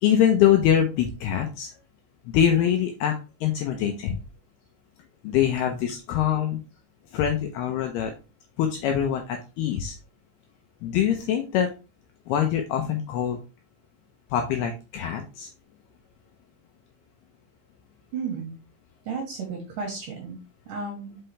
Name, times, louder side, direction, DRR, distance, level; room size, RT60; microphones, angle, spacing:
voice 1, 0.0-1.7 2.3-3.2 3.4-4.2 5.2-6.6 7.1-8.1 8.6-10.0 10.8-11.7 12.3-13.4 14.3-15.5, left 9 dB, 80° left, 4 dB, 2.3 m, -24 dB
voice 2, 18.1-18.5 19.1-20.4 20.7-21.2, right 5 dB, 65° right, 1 dB, 2.2 m, -33 dB
5.9 x 5.6 x 3.3 m, 0.31 s
omnidirectional pair, 5.3 m